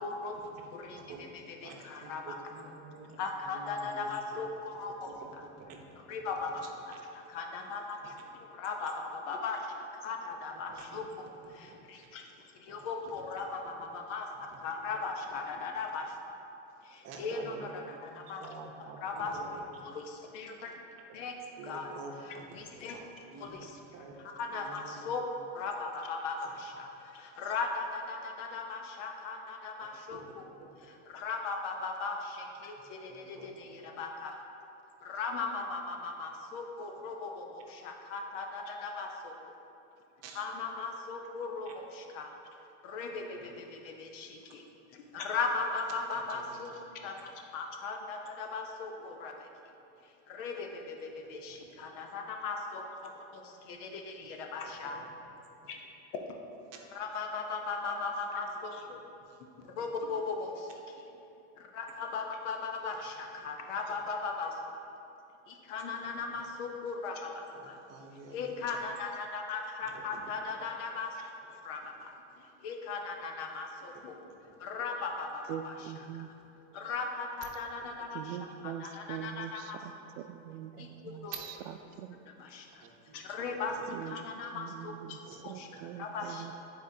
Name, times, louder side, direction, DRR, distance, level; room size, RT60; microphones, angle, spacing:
voice 1, 0.0-2.7 3.2-5.4 6.0-12.3 12.6-16.2 16.8-18.4 18.8-20.7 21.1-23.0 23.4-25.2 25.5-30.4 30.8-34.4 35.0-39.3 40.3-42.3 42.8-44.6 44.9-49.5 50.3-55.0 55.7-55.8 56.9-59.0 59.7-61.1 61.6-64.6 65.5-67.8 68.3-71.2 71.6-74.2 74.6-76.3 76.7-79.8 80.8-81.9 82.3-82.8 83.1-85.2 85.4-86.5, left 4 dB, 70° left, 3 dB, 0.9 m, -38 dB
voice 2, 1.6-4.1 5.0-5.8 10.7-11.0 11.6-11.8 12.7-12.8 13.0-13.2 14.4-14.6 15.5-15.6 17.0-17.8 18.1-19.8 21.6-23.0 23.3-23.6 23.9-24.2 24.5-25.1 30.1-30.7 33.1-33.5 33.9-34.0 40.2-40.4 41.7-41.8 43.3-43.5 46.3-46.6 51.5-51.6 54.2-54.4 54.8-55.1 56.7-56.8 66.3-66.4 67.5-68.5 69.8-70.0 74.4-74.5 77.8-77.9 80.7-80.9 81.3-81.4 82.8-83.8 85.3-85.4 85.7-85.8, right 4 dB, 40° right, 1 dB, 0.9 m, -49 dB
voice 3, 75.5-76.3 78.1-81.3 81.7-82.2 83.9-84.2 84.5-85.2 85.4-86.5, right 10 dB, 75° right, 9 dB, 0.5 m, -42 dB
9.6 x 4.3 x 2.7 m, 2.9 s
supercardioid pair, 130°, 39 cm